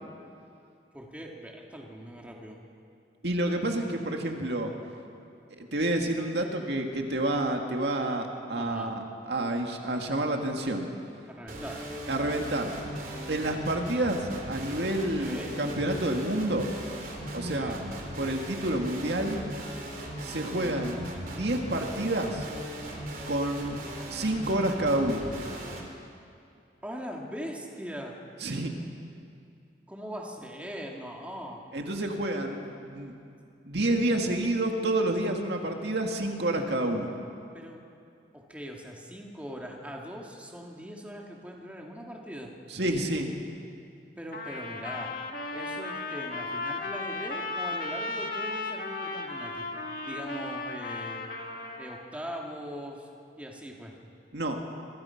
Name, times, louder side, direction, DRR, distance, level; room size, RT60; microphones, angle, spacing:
voice 1, 0.9-2.6 8.6-8.9 11.3-11.8 15.2-15.6 17.4-17.9 20.4-20.8 26.8-28.1 29.9-31.6 37.5-37.8 38.3-42.5 44.2-45.1 45.5-49.7 50.0-51.2 51.8-53.1 53.4-54.0, equal, 10° right, -1 dB, 2.5 m, -41 dB
voice 2, 3.2-4.7 5.6-10.9 12.1-12.7 13.3-16.8 17.3-17.8 18.2-19.4 20.2-22.5 23.3-23.8 24.1-25.3 28.4-28.8 31.7-33.1 33.6-37.1 42.7-43.3 54.3-54.6, right 1 dB, 65° right, 3 dB, 2.1 m, -29 dB
sound 1, 11.5-25.8, right 1 dB, 50° right, 3.8 m, -38 dB
Trumpet, 44.3-52.1, left 3 dB, 50° left, 2.1 m, -35 dB
27.5 x 24.5 x 5.9 m, 2.5 s
head